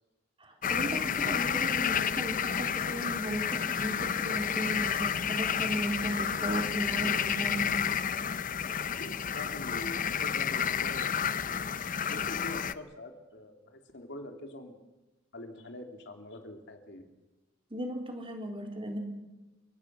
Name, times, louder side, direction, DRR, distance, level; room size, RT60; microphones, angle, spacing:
voice 1, 0.4-7.7 17.7-19.0, right 1 dB, 25° right, 2 dB, 3.9 m, -36 dB
sound 1, 0.6-12.7, left 7 dB, 45° left, 0.7 m, -30 dB
voice 2, 9.0-11.1 11.5-11.7 12.0-14.8 15.3-17.1, left 1 dB, 60° left, 4 dB, 2.9 m, -44 dB
29.0 x 18.5 x 6.2 m, 1.1 s
head